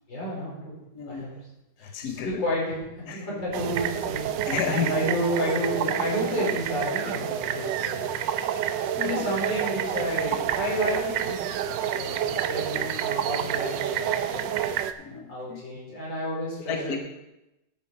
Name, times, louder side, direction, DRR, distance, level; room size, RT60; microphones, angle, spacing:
voice 1, 0.1-0.8 1.1-1.3 1.8-2.8 3.1-4.3 4.9-8.1 9.0-11.4 11.8-14.6 15.3-17.0, equal, 80° left, -6 dB, 5.7 m, -31 dB
voice 2, 0.9-1.2 1.8-2.4 3.1-3.3 4.5-5.0 8.9-9.2 15.0-15.6 16.7-17.0, left 7 dB, 60° left, 4 dB, 1.3 m, -31 dB
sound 1, 3.5-14.9, right 9 dB, 85° right, 1.3 m, -28 dB
11.5 x 7.8 x 4.8 m, 0.93 s
omnidirectional pair, 2.0 m